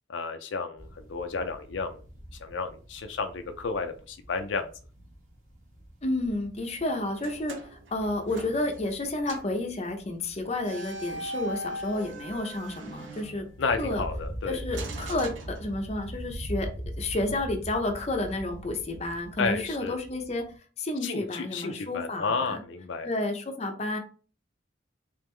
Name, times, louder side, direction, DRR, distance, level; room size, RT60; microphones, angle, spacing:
voice 1, 0.1-2.0 2.4-4.7 13.6-14.6 19.4-20.0 21.0-23.1, left 4 dB, 80° left, 7 dB, 0.5 m, -32 dB
sound 1, 0.8-20.6, equal, 40° right, 1.3 m, -43 dB
voice 2, 6.0-13.5 13.8-14.0 14.5-16.7 17.0-20.5 20.8-22.6 23.0-24.0, left 2 dB, 35° left, 4 dB, 0.6 m, -31 dB
sound 2, 7.2-9.0 9.3-9.6 10.6-13.8 14.7-16.1, right 1 dB, 80° right, 0.7 m, -40 dB
3.5 x 3.3 x 3.2 m, 0.38 s
head